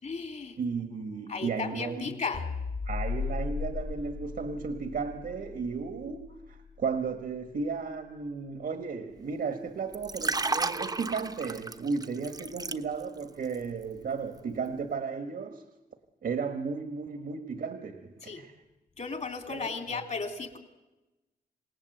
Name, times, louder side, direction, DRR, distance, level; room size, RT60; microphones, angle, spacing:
voice 1, 0.0-0.6 1.3-2.4 18.2-18.4 19.0-20.6, left 4 dB, 50° left, 3.2 m, -35 dB
voice 2, 0.6-2.2 2.9-15.6 16.2-18.5 19.5-20.0, right 5 dB, 70° right, 1.6 m, -34 dB
sound 1, 2.3-6.8, left 5 dB, 75° left, 2.5 m, -36 dB
Liquid, 9.9-13.2 13.5-13.8, right 3 dB, 25° right, 1.0 m, -33 dB
27.5 x 18.0 x 8.0 m
wide cardioid pair, 120°, 16 cm